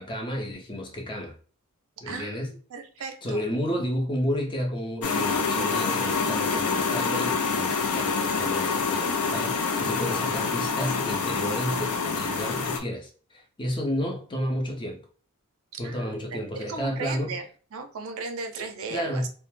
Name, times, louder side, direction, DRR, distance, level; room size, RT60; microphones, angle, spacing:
voice 1, 0.0-1.4 2.0-2.5 3.2-15.0 15.8-17.4 18.9-19.3, equal, 20° left, 0.5 m, -31 dB
voice 2, 2.1-3.5 15.7-19.3, right 4 dB, 65° right, 0.4 m, -37 dB
sound 1, 5.0-12.8, left 5 dB, 75° left, 0.5 m, -26 dB
2.1 x 2.0 x 3.0 m
head